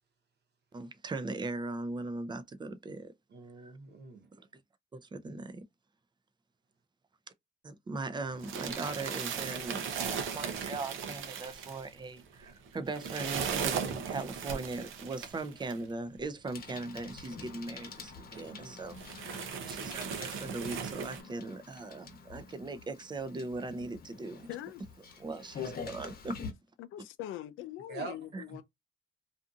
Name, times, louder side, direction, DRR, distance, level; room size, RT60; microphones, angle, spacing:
voice 1, 0.7-3.1 3.6-3.7 4.3-4.5 4.9-5.7 7.6-24.4 25.2-26.4 28.3-28.4, right 3 dB, 20° right, 0.5 m, -39 dB
voice 2, 3.3-4.3 18.3-18.8 23.8-24.4 27.9-28.1, right 5 dB, 55° right, 1.0 m, -46 dB
sound 1, 8.3-15.8 16.7-16.8 17.1-17.2 17.9-18.0 18.4-18.5 18.9-21.2, right 7 dB, 80° right, 0.7 m, -37 dB
Bicycle, 16.5-26.5, left 5 dB, 50° left, 0.9 m, -46 dB
voice 3, 24.5-24.8 26.8-28.6, left 13 dB, 80° left, 0.4 m, -42 dB
2.6 x 2.5 x 2.4 m
cardioid pair, 90°, 20 cm